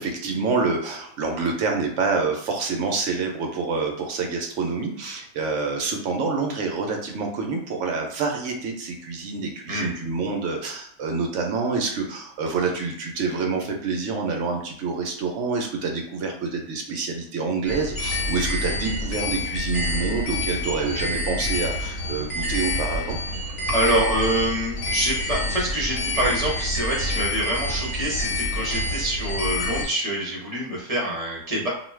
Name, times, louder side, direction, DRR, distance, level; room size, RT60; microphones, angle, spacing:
voice 1, 0.0-23.2, right 4 dB, 70° right, 2 dB, 0.9 m, -27 dB
sound 1, 17.7-29.9, left 1 dB, 60° left, 1.2 m, -27 dB
voice 2, 23.7-31.7, right 1 dB, 30° right, -4 dB, 0.9 m, -26 dB
2.5 x 2.3 x 3.1 m, 0.67 s
omnidirectional pair, 1.5 m